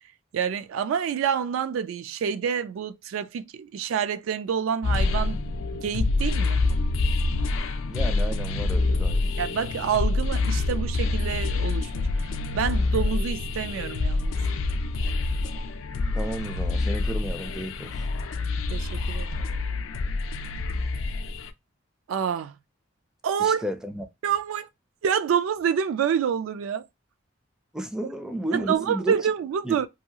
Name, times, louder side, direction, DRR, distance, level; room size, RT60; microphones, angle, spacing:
voice 1, 0.3-5.4 5.7-6.6 9.4-12.3 12.5-14.4 18.7-19.4 22.1-22.5 23.2-23.7 24.2-24.7 25.0-26.9 28.5-29.9, right 7 dB, 80° right, 0.3 m, -27 dB
sound 1, 4.8-21.5, left 3 dB, 90° left, 0.4 m, -26 dB
voice 2, 7.9-9.3 16.1-18.0 23.4-24.1 27.7-29.2 29.6-29.8, right 1 dB, 5° right, 0.4 m, -32 dB
2.7 x 2.3 x 2.7 m
head